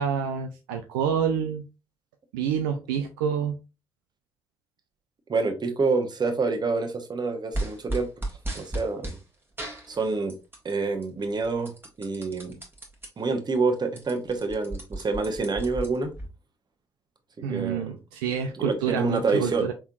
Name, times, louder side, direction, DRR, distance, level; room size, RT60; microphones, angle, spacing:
voice 1, 0.0-1.6 2.3-3.5 17.4-19.7, right 7 dB, 80° right, 0.4 m, -28 dB
voice 2, 5.3-8.1 8.5-9.2 9.9-10.3 10.6-11.7 12.0-12.6 13.2-16.1 17.4-18.0 18.5-19.7, right 4 dB, 40° right, 1.0 m, -27 dB
sound 1, 7.5-9.2 9.6-10.7 11.0-13.1 13.5-13.6 13.8-16.3, right 1 dB, 20° right, 1.5 m, -34 dB
4.2 x 3.6 x 2.4 m
hypercardioid pair, 40°, 12 cm